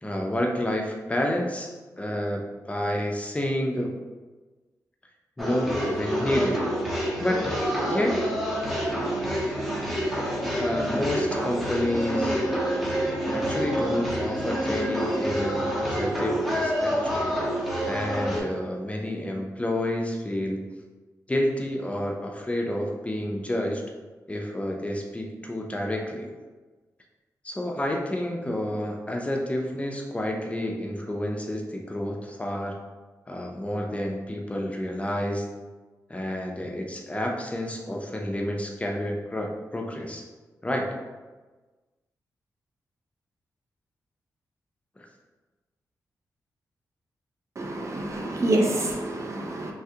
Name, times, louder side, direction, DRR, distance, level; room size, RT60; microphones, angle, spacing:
voice 1, 0.0-3.9 5.4-6.6 7.2-7.4 7.8-8.2 10.6-12.4 13.0-17.3 17.9-20.6 21.3-23.8 24.3-26.3 27.4-32.8 33.3-35.5 36.1-40.2 40.6-40.9 45.0-45.1, left 1 dB, 20° left, 1 dB, 0.5 m, -29 dB
sound 1, 5.4-18.4, equal, ahead, 0.8 m, -27 dB
voice 2, 47.6-49.7, right 1 dB, 45° right, 1 dB, 0.5 m, -27 dB
3.2 x 2.3 x 2.8 m, 1.3 s
cardioid pair, 60°, 7 cm